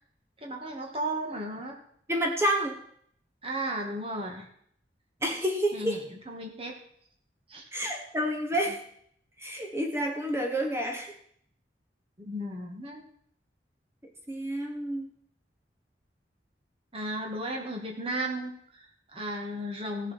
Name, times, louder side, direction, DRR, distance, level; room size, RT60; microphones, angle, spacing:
voice 1, 0.4-1.8 3.4-4.5 5.7-6.0 6.3-6.7 7.5-7.6 12.2-13.1 16.9-20.1, right 1 dB, 30° right, 1 dB, 2.3 m, -34 dB
voice 2, 2.1-2.8 5.2-6.0 7.7-8.8 9.4-11.1 14.3-15.1, right 1 dB, 15° right, 2 dB, 1.2 m, -29 dB
16.0 x 7.4 x 6.0 m, 0.66 s
head